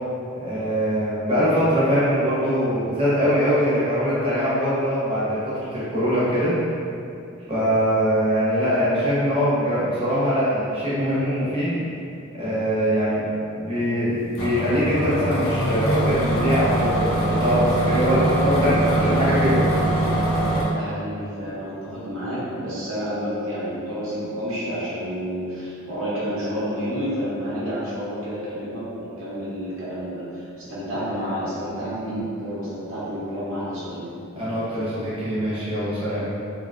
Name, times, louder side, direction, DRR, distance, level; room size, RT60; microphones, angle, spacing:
voice 1, 0.4-6.5 7.5-11.8 12.3-19.6 34.3-36.2, equal, 25° right, -10 dB, 0.8 m, -22 dB
sound 1, 14.4-20.6, right 1 dB, 60° left, 0.5 m, -22 dB
voice 2, 18.5-19.1 20.7-34.0, equal, 65° right, -9 dB, 0.8 m, -30 dB
2.7 x 2.6 x 2.4 m, 2.6 s
head